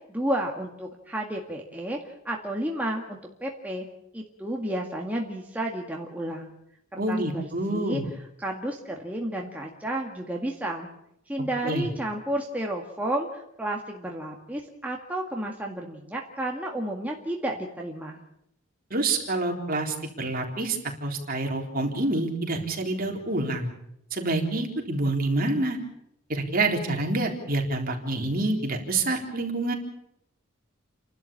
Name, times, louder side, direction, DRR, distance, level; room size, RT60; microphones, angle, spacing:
voice 1, 0.1-2.0 2.3-3.9 4.1-6.5 7.1-8.0 8.4-10.9 11.3-18.2, right 1 dB, 5° right, -1 dB, 2.0 m, -31 dB
voice 2, 7.0-8.0 11.6-11.9 18.9-23.7 24.1-25.8 26.3-29.7, right 2 dB, 45° right, 2 dB, 3.9 m, -27 dB
30.0 x 12.5 x 8.7 m, 0.80 s
head